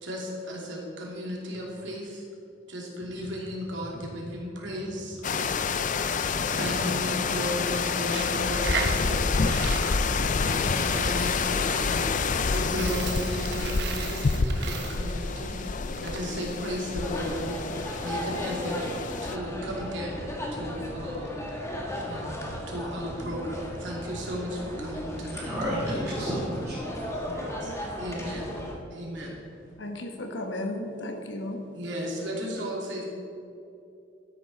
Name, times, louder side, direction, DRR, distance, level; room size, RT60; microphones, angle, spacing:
voice 1, 0.0-2.2 2.7-5.2 6.3-9.3 10.2-17.6 18.0-18.8 19.2-20.2 20.5-21.6 22.0-22.4 22.7-25.5 27.2-28.6 28.9-29.4 31.7-33.1, equal, 85° right, -2 dB, 2.8 m, -35 dB
sound 1, 5.2-19.4, left 4 dB, 45° left, 0.5 m, -28 dB
voice 2, 5.6-6.1 6.5-6.6 25.4-26.8 27.8-27.9, equal, 15° right, -10 dB, 2.9 m, -32 dB
Coin (dropping), 8.0-16.2, right 5 dB, 65° right, 1.0 m, -37 dB
sound 2, 17.0-28.7, left 1 dB, 15° left, 1.8 m, -36 dB
voice 3, 29.8-31.6, left 1 dB, 80° left, 4 dB, 1.4 m, -34 dB
12.5 x 10.5 x 4.2 m, 2.7 s
head